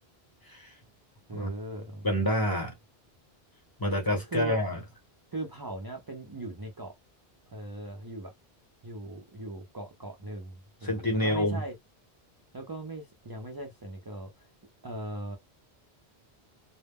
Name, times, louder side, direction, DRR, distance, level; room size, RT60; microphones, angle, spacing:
voice 1, 1.3-2.1 4.3-4.5 5.3-6.9 7.5-8.3 8.8-11.7 12.5-14.5 14.8-15.4, right 1 dB, 30° right, 0.4 m, -39 dB
voice 2, 2.0-2.7 3.8-4.8 10.8-11.6, left 1 dB, 25° left, 0.8 m, -27 dB
2.2 x 2.0 x 3.4 m
omnidirectional pair, 1.0 m